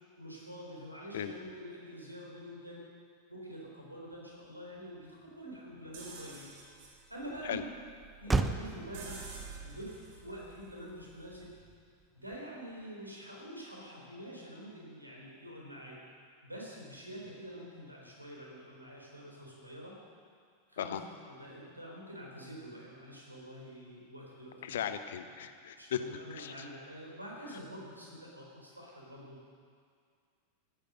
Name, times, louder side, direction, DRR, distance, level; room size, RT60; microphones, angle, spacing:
voice 1, 0.2-2.8 3.3-6.5 7.1-7.7 8.2-9.2 9.6-11.5 12.1-15.9 16.4-19.9 20.7-21.0 21.3-24.8 25.8-29.5, equal, 85° right, -3 dB, 3.9 m, -46 dB
Motor vehicle (road), 4.1-12.8, right 3 dB, 10° right, 0.7 m, -40 dB
sound 1, 5.9-11.7, right 4 dB, 50° right, 3.0 m, -50 dB
voice 2, 24.6-26.0 26.3-26.5, left 10 dB, 60° left, 10 dB, 0.9 m, -36 dB
16.0 x 10.0 x 6.5 m, 2.2 s
figure-of-eight pair, 90°, 0 cm